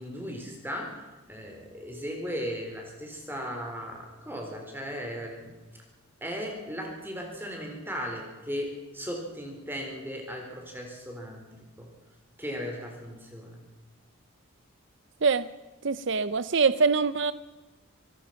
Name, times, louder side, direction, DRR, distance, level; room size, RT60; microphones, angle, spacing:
voice 1, 0.0-5.5 6.2-11.5 11.8-11.9 12.4-13.6, equal, 10° right, 2 dB, 4.1 m, -37 dB
voice 2, 15.8-17.3, right 4 dB, 55° right, 14 dB, 0.6 m, -24 dB
26.5 x 18.0 x 5.9 m, 1.2 s
head